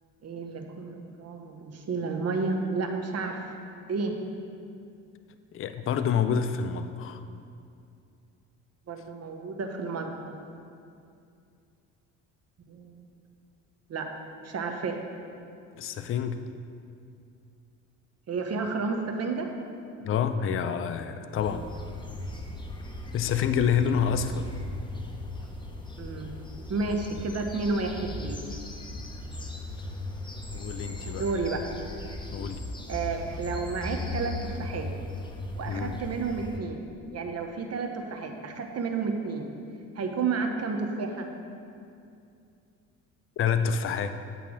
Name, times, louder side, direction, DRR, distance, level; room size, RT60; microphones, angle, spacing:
voice 1, 0.2-3.5 3.9-4.1 8.9-10.4 12.7-13.0 13.9-14.1 14.4-15.0 18.3-19.5 26.0-26.3 26.7-28.4 31.1-31.7 32.9-34.9 35.5-36.8 37.1-39.5 39.9-41.3, right 4 dB, 40° right, 4 dB, 1.0 m, -31 dB
voice 2, 5.5-7.2 15.8-16.5 20.0-21.7 23.1-24.5 30.5-31.2 32.3-32.6 35.7-36.0 43.4-44.1, left 7 dB, 35° left, 10 dB, 0.4 m, -27 dB
sound 1, 21.3-36.6, left 2 dB, 10° left, 0.8 m, -38 dB
8.2 x 3.4 x 6.2 m, 2.5 s
hypercardioid pair, 60°, 38 cm